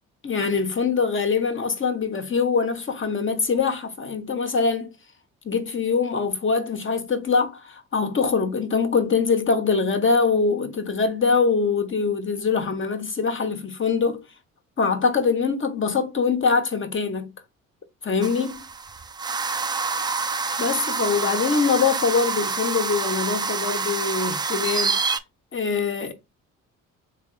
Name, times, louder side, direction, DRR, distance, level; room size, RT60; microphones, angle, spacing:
voice 1, 0.2-4.9 5.4-14.2 14.8-17.3 18.0-18.7 20.6-25.0 25.5-26.1, left 5 dB, 30° left, 1.1 m, -23 dB
sound 1, 18.2-25.2, right 4 dB, 10° right, 0.3 m, -27 dB
3.9 x 3.3 x 2.5 m
hypercardioid pair, 50°, 39 cm